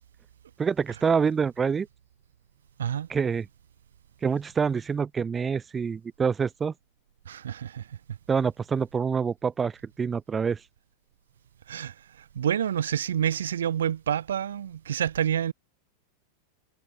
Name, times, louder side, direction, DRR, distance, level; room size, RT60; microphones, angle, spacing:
voice 1, 0.6-1.9 3.1-3.5 4.2-6.7 8.3-10.6, right 6 dB, 20° right, 1.5 m, -26 dB
voice 2, 7.3-7.8 11.7-11.9 12.3-15.5, right 9 dB, 65° right, 2.4 m, -28 dB
figure-of-eight pair, 90°, 0 cm